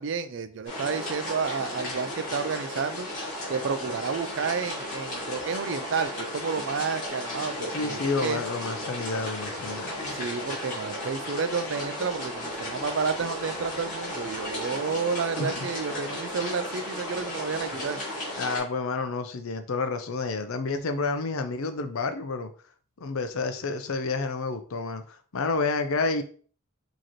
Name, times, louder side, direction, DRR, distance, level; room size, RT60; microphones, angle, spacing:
voice 1, 0.0-3.1 3.5-8.4 10.1-18.0, right 5 dB, 55° right, 0.4 m, -31 dB
sound 1, 0.7-18.6, left 1 dB, 35° left, 1.9 m, -34 dB
voice 2, 7.7-10.2 15.4-15.7 18.4-22.5 23.0-26.2, left 3 dB, 75° left, 0.6 m, -30 dB
4.9 x 2.9 x 3.0 m
head